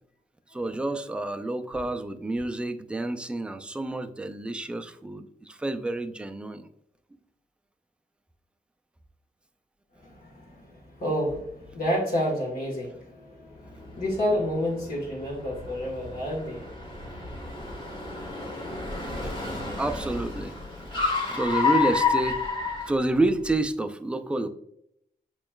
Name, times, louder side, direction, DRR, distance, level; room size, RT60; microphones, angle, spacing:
voice 1, 0.5-6.7 19.2-19.3 19.8-20.5 21.2-22.4 22.9-24.5, right 2 dB, 5° right, 7 dB, 0.3 m, -29 dB
voice 2, 9.9-17.2 17.5-17.6, equal, 65° left, -4 dB, 1.6 m, -30 dB
Car, 13.7-23.6, left 4 dB, 30° left, 1.4 m, -30 dB
6.5 x 3.1 x 2.3 m, 0.74 s
wide cardioid pair, 120°, 17 cm